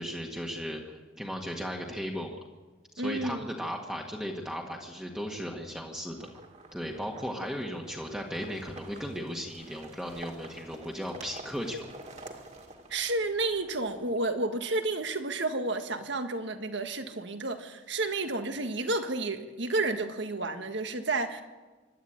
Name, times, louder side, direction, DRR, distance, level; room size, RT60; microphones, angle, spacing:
voice 1, 0.0-2.4 2.9-6.3 6.7-11.9, equal, 5° right, 0 dB, 1.7 m, -36 dB
voice 2, 3.0-3.5 12.9-21.4, right 2 dB, 65° right, 7 dB, 1.7 m, -31 dB
sound 1, 6.1-14.1, right 2 dB, 35° right, 2.2 m, -49 dB
25.0 x 12.0 x 8.8 m, 1.3 s
head